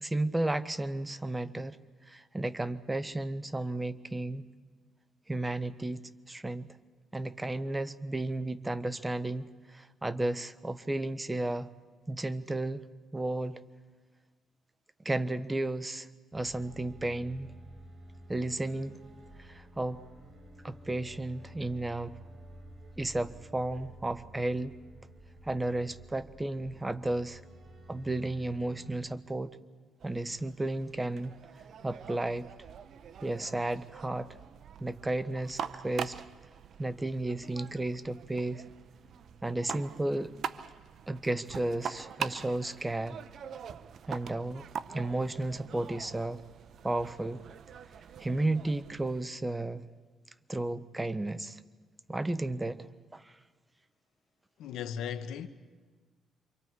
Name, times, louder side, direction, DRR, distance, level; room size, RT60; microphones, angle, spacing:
voice 1, 0.0-1.8 2.1-4.4 5.3-6.0 6.3-6.7 7.1-9.4 9.7-11.7 12.1-12.8 13.1-13.6 15.0-17.5 18.3-19.0 19.4-20.0 20.6-22.2 23.0-24.7 25.4-27.4 27.9-29.5 30.0-31.4 31.8-32.5 33.2-34.3 34.8-36.2 36.8-38.6 39.4-40.3 41.1-43.2 44.1-44.7 44.9-46.4 46.8-47.4 48.2-49.9 50.5-51.6 52.1-52.9 53.1-53.3, right 2 dB, 15° right, 0.8 m, -33 dB
sound 1, 16.3-29.1, right 1 dB, 35° right, 4.4 m, -51 dB
sound 2, 30.0-49.2, right 8 dB, 60° right, 0.7 m, -44 dB
voice 2, 54.6-55.5, left 8 dB, 85° left, 1.0 m, -36 dB
27.5 x 25.0 x 4.7 m
cardioid pair, 90°, 0 cm